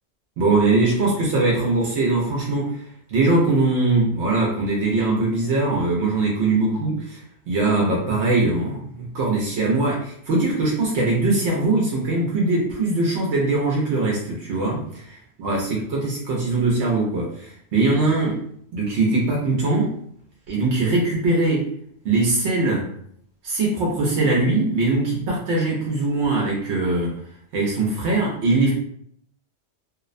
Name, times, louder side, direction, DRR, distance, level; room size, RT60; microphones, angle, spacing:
voice 1, 0.4-18.4 18.7-20.0 20.5-21.7 22.0-22.9 23.4-27.2 27.5-28.7, right 2 dB, 80° right, -3 dB, 0.9 m, -21 dB
2.7 x 2.0 x 2.4 m, 0.66 s
omnidirectional pair, 1.1 m